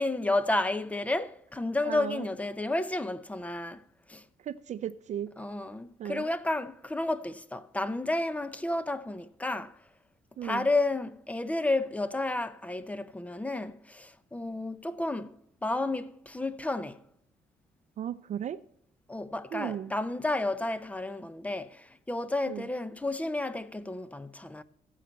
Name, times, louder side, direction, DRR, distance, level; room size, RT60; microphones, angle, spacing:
voice 1, 0.0-3.8 4.1-4.2 5.4-9.8 10.4-15.4 15.6-17.0 19.1-24.6, left 2 dB, 10° left, 0.6 m, -31 dB
voice 2, 1.8-2.3 4.4-5.3 6.0-6.3 10.4-10.7 18.0-18.6 19.5-19.9 22.5-22.7, right 10 dB, 50° right, 0.4 m, -35 dB
16.0 x 7.4 x 4.0 m
cardioid pair, 150°, 15 cm